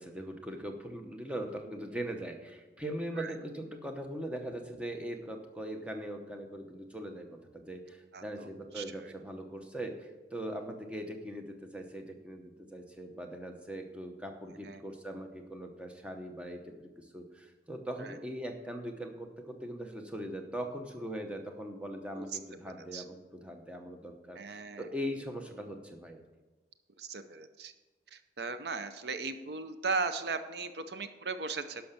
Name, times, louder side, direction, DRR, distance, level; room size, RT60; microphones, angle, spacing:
voice 1, 0.0-26.2, right 1 dB, 5° right, 4 dB, 0.9 m, -41 dB
voice 2, 8.1-8.5 8.7-9.1 14.6-14.8 18.0-18.2 22.1-22.3 22.7-23.0 24.4-24.9 27.0-27.7 28.1-31.8, right 4 dB, 70° right, 10 dB, 0.6 m, -37 dB
11.5 x 5.8 x 6.7 m, 1.2 s
head